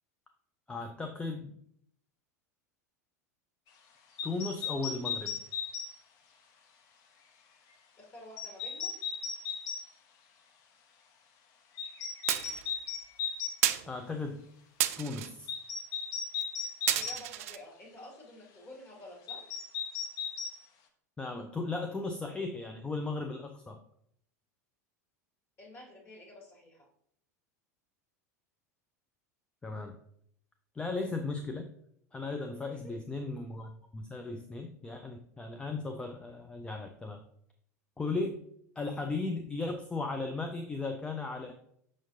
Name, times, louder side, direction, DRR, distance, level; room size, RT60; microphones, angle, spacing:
voice 1, 0.7-1.6 4.2-5.4 13.9-14.5 15.0-15.5 21.2-23.8 29.6-30.0 30.7-31.8 32.1-37.2 38.0-38.4 38.8-41.5, left 3 dB, 10° left, 5 dB, 0.5 m, -36 dB
sound 1, 4.2-5.9 8.4-9.8 11.8-13.6 15.5-17.2 19.3-20.5, left 6 dB, 45° left, 0.9 m, -36 dB
voice 2, 8.0-9.0 16.9-19.6 25.6-26.9 32.8-32.9, left 1 dB, 25° left, -3 dB, 2.5 m, -50 dB
sound 2, 12.3-12.6 13.6-13.9 14.8-15.3 16.4-16.5 16.9-17.6, right 12 dB, 55° right, 0.4 m, -30 dB
6.2 x 5.8 x 2.6 m, 0.68 s
figure-of-eight pair, 85°, 9 cm